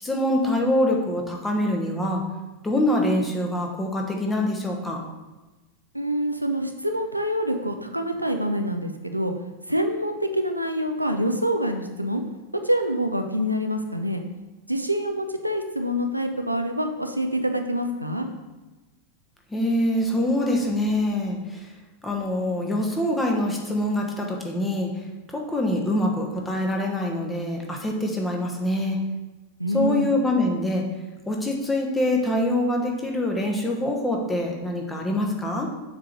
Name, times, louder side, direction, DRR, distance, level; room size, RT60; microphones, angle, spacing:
voice 1, 0.0-2.2 2.6-5.0 19.5-21.7 22.0-29.0 29.7-30.8 31.3-35.7, left 1 dB, 10° left, 0 dB, 1.1 m, -25 dB
voice 2, 5.9-9.3 9.7-12.2 12.6-14.2 14.7-18.3 29.6-30.1, equal, 90° right, 5 dB, 0.5 m, -26 dB
7.3 x 3.8 x 4.6 m, 1.1 s
figure-of-eight pair, 90°, 0 cm